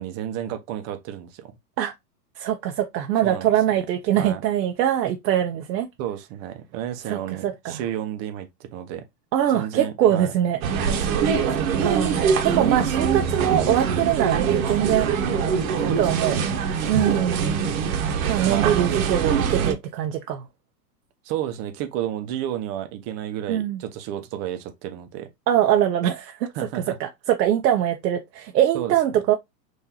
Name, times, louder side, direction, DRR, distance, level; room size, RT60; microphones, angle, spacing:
voice 1, 0.0-1.5 3.2-3.5 4.2-4.4 6.0-9.0 9.5-10.3 10.9-11.7 12.6-13.1 15.8-16.3 18.5-19.1 21.2-25.3 26.5-27.0 28.7-28.9, right 11 dB, 30° right, 0.6 m, -32 dB
voice 2, 2.4-5.9 7.1-7.8 9.3-10.6 11.8-15.1 16.0-16.4 16.9-17.4 18.3-20.4 23.5-23.8 25.5-26.5 26.7-29.3, right 11 dB, 85° right, 0.6 m, -23 dB
sound 1, 10.6-19.7, right 6 dB, 55° right, 0.9 m, -23 dB
3.8 x 2.6 x 2.8 m
hypercardioid pair, 120°, 50 cm